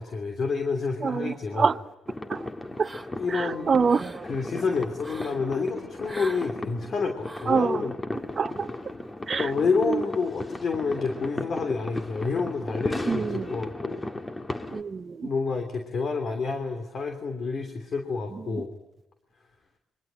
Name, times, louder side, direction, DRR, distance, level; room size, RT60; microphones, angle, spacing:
voice 1, 0.0-1.7 3.2-3.9 4.2-8.0 9.3-14.0 15.2-18.7, left 4 dB, 50° left, 3.1 m, -29 dB
voice 2, 1.0-1.7 2.3-2.4 2.8-2.9 3.3-4.2 7.5-7.8 8.4-8.7 9.3-9.5 9.9-10.0 13.1-13.5 14.7-15.3, right 5 dB, 40° right, 0.9 m, -25 dB
sound 1, 2.1-14.8, left 2 dB, 20° left, 1.8 m, -36 dB
sound 2, 2.8-3.3 3.7-4.2 5.0-5.4 6.0-6.5 7.2-7.6, right 2 dB, 5° right, 2.6 m, -41 dB
28.5 x 23.5 x 9.0 m
cardioid pair, 90°, 0 cm